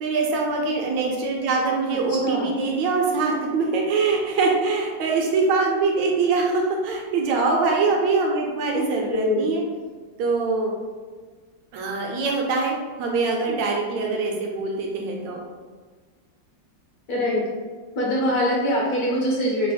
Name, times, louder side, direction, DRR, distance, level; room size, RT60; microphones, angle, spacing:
voice 1, 0.0-9.6 10.2-10.7 11.7-15.4, right 4 dB, 75° right, 0 dB, 1.2 m, -23 dB
voice 2, 9.1-9.4 13.5-13.6 17.1-17.4 18.0-19.7, left 1 dB, 65° left, -4 dB, 1.1 m, -23 dB
3.3 x 2.0 x 3.9 m, 1.5 s
omnidirectional pair, 2.1 m